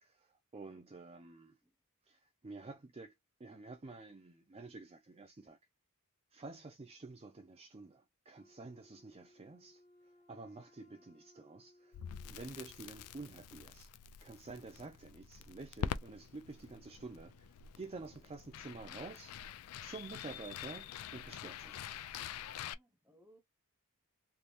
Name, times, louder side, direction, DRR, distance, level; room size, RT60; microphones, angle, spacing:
voice 1, 0.0-1.6 2.1-3.1 3.4-5.6 6.3-9.8 10.3-12.0 12.3-13.9 14.2-19.4 19.8-21.8, right 3 dB, 25° right, 0.5 m, -50 dB
Wind instrument woodwind instrument, 8.3-13.3, left 1 dB, 35° left, 1.3 m, -66 dB
Crackle, 11.9-22.7, left 8 dB, 85° left, 0.4 m, -46 dB
voice 2, 22.6-23.4, equal, 10° right, 0.9 m, -67 dB
3.4 x 2.8 x 2.4 m
head